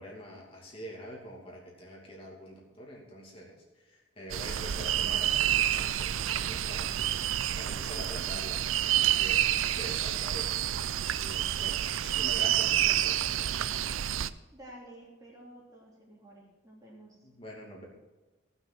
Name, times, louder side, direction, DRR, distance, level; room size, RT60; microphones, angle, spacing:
voice 1, 0.0-9.4 9.6-10.5 10.8-13.7 17.2-17.8, equal, 30° left, -2 dB, 2.6 m, -45 dB
sound 1, 4.3-14.3, right 11 dB, 85° right, 0.5 m, -29 dB
voice 2, 14.5-17.3, right 1 dB, 15° right, -3 dB, 3.1 m, -51 dB
16.5 x 6.2 x 6.2 m, 1.2 s
head